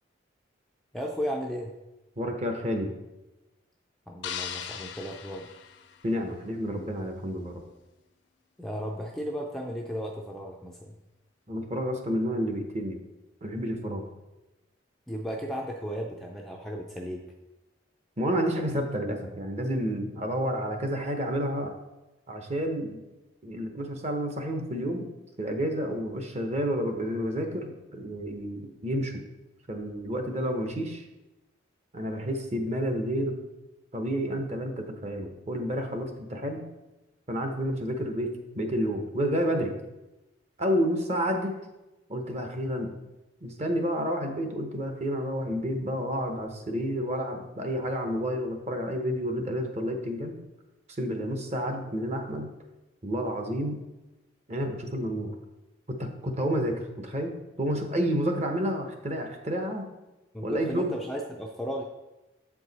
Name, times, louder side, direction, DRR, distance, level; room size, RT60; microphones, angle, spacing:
voice 1, 0.9-1.7 4.1-5.6 8.6-10.9 15.1-17.2 60.3-61.8, equal, ahead, 0 dB, 0.4 m, -35 dB
voice 2, 2.2-2.9 6.0-7.5 11.5-13.0 13.4-14.0 18.2-21.7 22.3-23.0 23.4-25.1 25.4-29.1 29.7-31.0 31.9-33.3 33.9-36.6 37.3-39.7 40.6-41.5 42.1-42.9 43.4-50.3 51.0-52.5 53.0-53.8 54.5-55.3 56.0-57.3 57.6-59.9 60.4-60.8, equal, 35° right, 4 dB, 0.8 m, -30 dB
sound 1, 4.2-6.5, left 8 dB, 65° left, 0.5 m, -39 dB
7.8 x 4.7 x 4.0 m, 1.0 s
head